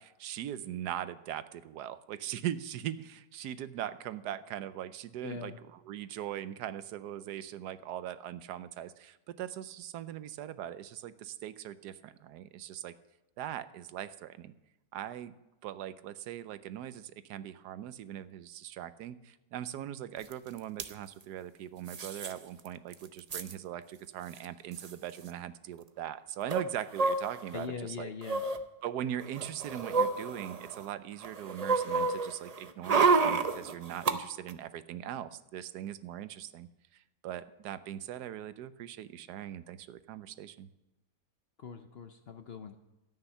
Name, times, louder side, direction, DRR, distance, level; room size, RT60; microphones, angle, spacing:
voice 1, 0.0-12.9 13.4-14.5 14.9-15.3 15.6-28.1 28.8-40.7, right 11 dB, 90° right, 14 dB, 1.2 m, -40 dB
voice 2, 5.2-5.6 27.5-28.4 41.6-42.8, left 6 dB, 55° left, 7 dB, 0.7 m, -41 dB
sound 1, 20.3-20.4 20.6-20.9 21.9-22.3 22.7-22.8 22.9-23.5 24.4-24.5 24.7-24.9 26.5-27.6 28.2-28.6 29.2-30.9 31.2-34.1 34.5-34.6, right 4 dB, 70° right, 0.3 m, -29 dB
13.5 x 9.1 x 5.6 m, 0.99 s
omnidirectional pair, 1.7 m